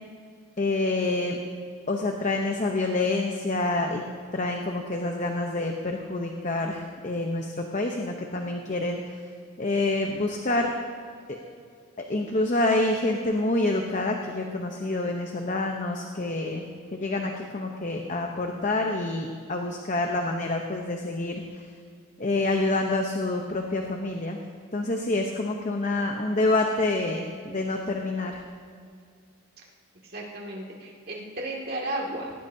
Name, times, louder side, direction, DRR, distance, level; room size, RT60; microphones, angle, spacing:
voice 1, 0.6-1.4 1.9-4.0 4.3-9.2 9.6-10.7 11.3-11.4 12.0-16.6 16.9-21.6 22.2-24.4 24.7-28.4, left 2 dB, 35° left, 2 dB, 0.8 m, -27 dB
voice 2, 30.0-32.3, right 1 dB, 45° right, -2 dB, 2.3 m, -34 dB
18.5 x 17.0 x 2.8 m, 2.2 s
head